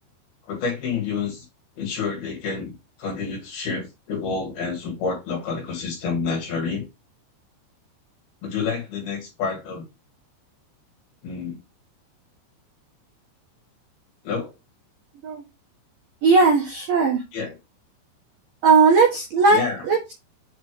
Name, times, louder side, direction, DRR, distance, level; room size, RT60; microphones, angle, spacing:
voice 1, 0.5-1.4 1.8-2.7 3.0-6.9 8.4-9.8 11.2-11.6 14.2-14.5 17.3-17.6 19.5-19.8, left 5 dB, 55° left, 3.3 m, -28 dB
voice 2, 16.2-17.2 18.6-20.2, right 4 dB, 80° right, 1.9 m, -18 dB
7.6 x 3.1 x 4.8 m
omnidirectional pair, 5.9 m